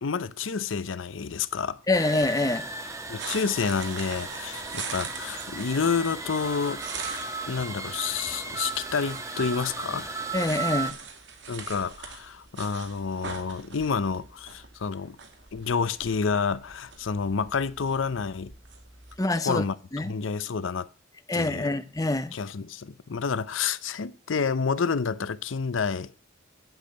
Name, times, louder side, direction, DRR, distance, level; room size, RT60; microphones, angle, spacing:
voice 1, 0.0-1.8 3.1-6.8 7.4-10.1 11.5-15.2 15.5-18.5 19.4-19.8 20.0-20.9 21.3-21.7 22.3-26.1, left 5 dB, 75° left, 0.6 m, -29 dB
voice 2, 1.9-2.7 10.3-10.9 19.2-19.6 19.9-20.1 21.3-22.3, left 2 dB, 20° left, 0.7 m, -25 dB
sound 1, 1.9-10.9, right 3 dB, 15° right, 1.3 m, -36 dB
sound 2, 3.2-19.2, right 5 dB, 60° right, 2.2 m, -43 dB
8.7 x 8.0 x 9.2 m
head